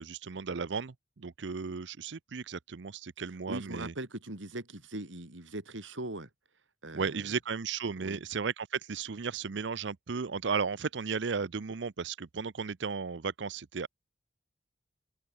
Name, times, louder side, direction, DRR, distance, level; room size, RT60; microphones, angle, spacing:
voice 1, 0.0-3.9 6.9-13.9, right 5 dB, 75° right, 0.6 m, -35 dB
voice 2, 3.5-6.3 6.8-7.4 8.0-8.2, right 1 dB, 90° right, 3.8 m, -40 dB
open air
head